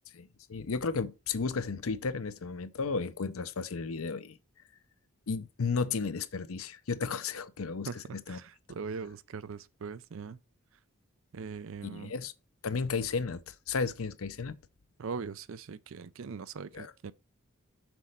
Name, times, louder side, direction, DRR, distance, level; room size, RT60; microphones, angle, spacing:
voice 1, 0.1-4.4 5.3-8.4 11.8-12.3 12.6-14.6 16.7-16.9, left 4 dB, 85° left, 0.6 m, -34 dB
voice 2, 7.9-10.4 11.3-12.1 15.0-17.1, right 5 dB, 70° right, 0.5 m, -41 dB
6.1 x 4.2 x 6.4 m
head